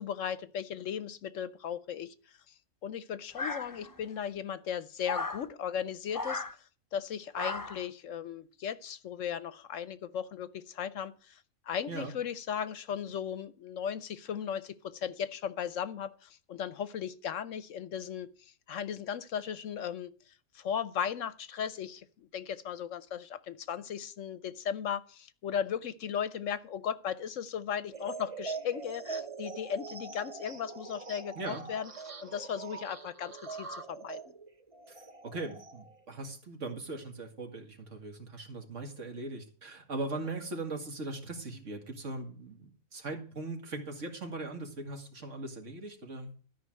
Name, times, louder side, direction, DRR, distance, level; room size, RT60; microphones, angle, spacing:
voice 1, 0.0-2.5 2.8-31.9 32.2-34.3, left 8 dB, 65° left, 1.0 m, -37 dB
sound 1, 3.4-4.1 5.0-5.5 6.1-6.5 7.3-7.9, left 3 dB, 20° left, 0.6 m, -36 dB
sound 2, 27.9-36.0, right 4 dB, 30° right, 0.8 m, -43 dB
voice 2, 35.2-46.3, right 2 dB, 60° right, 2.4 m, -39 dB
13.0 x 5.6 x 7.6 m
omnidirectional pair, 1.5 m